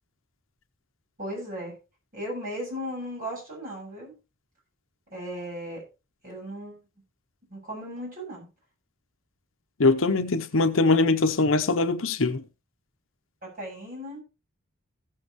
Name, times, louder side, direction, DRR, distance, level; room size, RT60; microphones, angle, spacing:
voice 1, 1.2-1.8 2.1-4.1 5.1-5.8 6.2-6.8 7.5-8.5 13.4-14.2, equal, 40° right, 7.6 m, -36 dB
voice 2, 9.8-12.4, left 3 dB, 65° left, 0.8 m, -22 dB
16.0 x 7.6 x 3.1 m
head